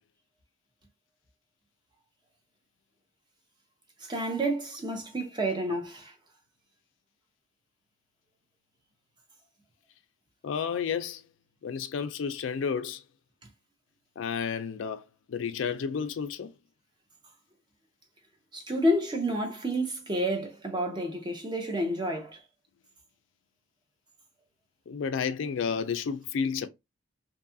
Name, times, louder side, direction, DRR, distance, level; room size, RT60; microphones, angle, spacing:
voice 1, 4.0-6.1 18.5-22.4, equal, 20° right, 0.6 m, -30 dB
voice 2, 10.4-11.2 11.6-13.0 14.2-16.5 24.9-26.7, left 6 dB, 65° left, 0.3 m, -31 dB
2.7 x 2.3 x 2.6 m
head